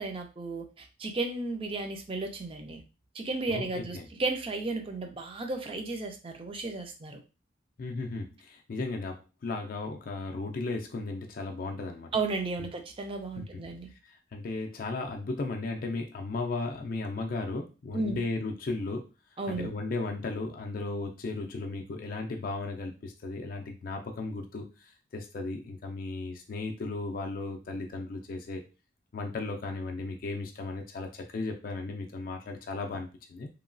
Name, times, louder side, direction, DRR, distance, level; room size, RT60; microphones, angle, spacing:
voice 1, 0.0-2.8 3.1-7.2 12.1-13.9 17.9-18.2 19.4-19.7, right 3 dB, 30° right, 5 dB, 0.4 m, -34 dB
voice 2, 3.5-4.1 7.8-12.1 13.4-13.5 14.0-19.1 19.5-28.6 29.1-33.5, left 3 dB, 45° left, 3 dB, 0.4 m, -35 dB
3.0 x 2.2 x 2.5 m, 0.31 s
head